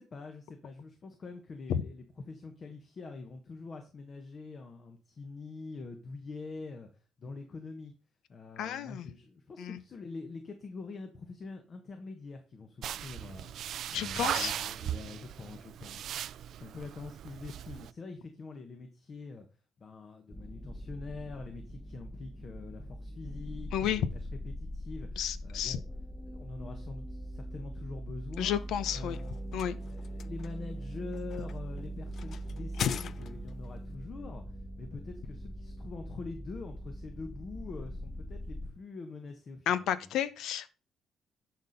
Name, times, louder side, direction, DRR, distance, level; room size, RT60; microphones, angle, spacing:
voice 1, 0.0-7.9 8.3-19.5 19.8-25.8 26.3-28.6 28.9-40.1, left 3 dB, 40° left, 1.2 m, -45 dB
voice 2, 8.6-9.1 9.6-9.8 13.9-14.5 23.7-24.0 25.2-25.8 28.4-29.2 29.5-29.8 32.8-32.9 39.7-40.7, left 10 dB, 85° left, 0.7 m, -31 dB
sound 1, 12.8-17.9, right 11 dB, 70° right, 0.3 m, -38 dB
sound 2, 20.3-38.7, right 1 dB, 15° left, 1.6 m, -42 dB
sound 3, 28.5-33.7, left 8 dB, 55° left, 0.3 m, -43 dB
10.5 x 4.4 x 5.2 m
cardioid pair, 115°, 0 cm